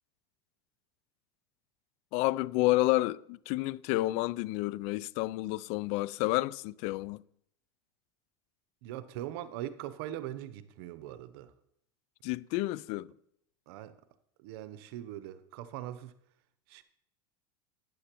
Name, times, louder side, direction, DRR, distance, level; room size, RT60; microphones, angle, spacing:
voice 1, 2.1-7.2 12.2-13.1, left 19 dB, 60° left, 0.4 m, -30 dB
voice 2, 8.8-11.5 13.7-13.9 14.4-16.1 16.7-16.8, right 12 dB, 70° right, 0.8 m, -41 dB
11.5 x 9.4 x 3.0 m
supercardioid pair, 105°, 13 cm